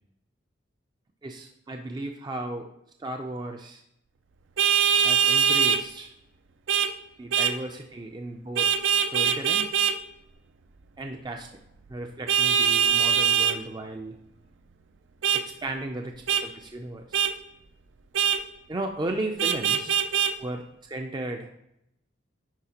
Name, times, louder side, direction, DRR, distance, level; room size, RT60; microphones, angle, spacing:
voice 1, 1.2-2.7 3.0-3.8 5.0-6.1 7.2-8.7 9.0-9.7 11.0-11.5 11.9-14.2 15.3-17.1 18.7-20.0 20.4-21.5, right 2 dB, 25° right, 3 dB, 0.4 m, -35 dB
Vehicle horn car horn honking, 4.6-5.8 6.7-6.9 7.3-7.6 8.6-10.0 12.3-13.6 15.2-15.4 16.3-16.4 17.1-17.3 18.1-18.4 19.4-20.3, right 8 dB, 80° right, 0.4 m, -22 dB
10.5 x 4.1 x 2.9 m, 0.80 s
head